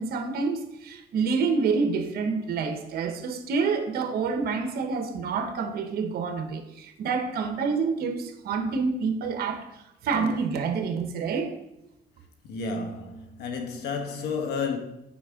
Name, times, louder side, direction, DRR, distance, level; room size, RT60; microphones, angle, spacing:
voice 1, 0.0-9.7 10.0-11.5, right 5 dB, 65° right, 1.1 m, -28 dB
voice 2, 12.4-14.8, left 4 dB, 75° left, 1.2 m, -31 dB
8.6 x 5.2 x 3.7 m
cardioid pair, 110°, 17 cm